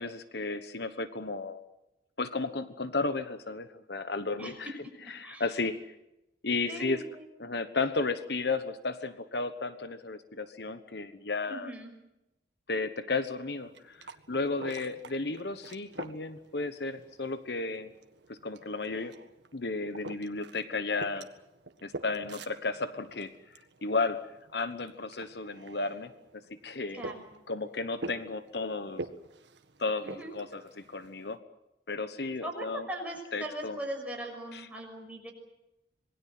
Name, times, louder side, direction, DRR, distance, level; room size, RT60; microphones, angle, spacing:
voice 1, 0.0-1.6 2.2-4.7 5.2-5.8 6.4-7.0 7.4-11.7 12.7-17.9 18.3-19.1 19.5-21.3 21.8-23.3 23.8-24.2 24.5-26.1 26.6-27.0 27.5-29.0 29.8-31.4 31.9-32.9 33.3-33.8, left 3 dB, 65° left, 11 dB, 1.2 m, -33 dB
voice 2, 5.0-5.5 6.7-7.3 11.5-11.9 26.9-27.3 30.0-30.4 32.4-35.3, right 1 dB, 10° right, 1 dB, 6.1 m, -40 dB
sound 1, 13.5-31.4, right 2 dB, 80° right, 1.7 m, -47 dB
27.0 x 21.0 x 7.8 m, 0.92 s
head